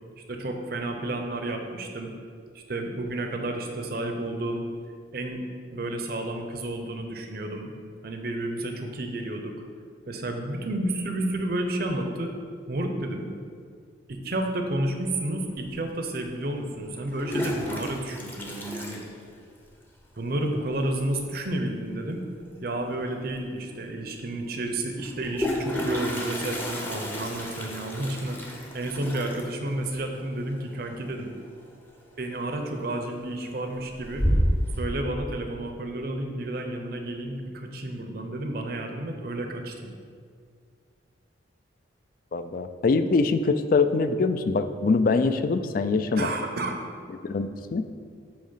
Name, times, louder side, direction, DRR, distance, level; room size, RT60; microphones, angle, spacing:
voice 1, 0.3-2.2 2.5-4.7 5.1-5.4 5.7-7.7 8.0-9.6 10.1-12.4 12.7-13.3 14.1-19.0 20.2-22.2 22.6-31.3 32.2-34.3 34.8-39.9 46.1-46.8, right 1 dB, 50° right, 4 dB, 0.7 m, -31 dB
Toilet flush, 15.7-15.8 17.0-19.8 20.0-20.1 20.4-20.5 20.8-21.2 22.9-23.0 23.4-23.5 25.0-31.7 32.0-32.4 32.9-33.4 33.8-34.8, equal, 10° left, 0.6 m, -31 dB
voice 2, 42.3-46.3 47.2-47.9, left 4 dB, 45° left, 10 dB, 0.3 m, -24 dB
8.7 x 3.1 x 5.6 m, 2.2 s
head